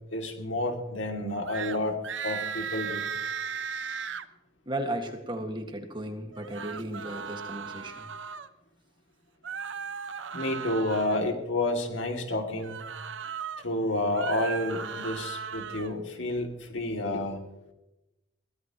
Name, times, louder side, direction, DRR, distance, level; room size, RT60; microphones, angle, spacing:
voice 1, 0.1-3.1 10.3-12.8 13.6-17.4, left 1 dB, 80° left, 3 dB, 2.7 m, -30 dB
sound 1, 1.5-1.8 2.0-4.2 6.3-8.5 9.4-11.2 12.6-13.6 14.0-15.9, right 6 dB, 75° right, 0.9 m, -36 dB
voice 2, 4.7-8.1, right 1 dB, 25° right, 4 dB, 2.0 m, -35 dB
23.0 x 17.0 x 3.1 m, 0.97 s
head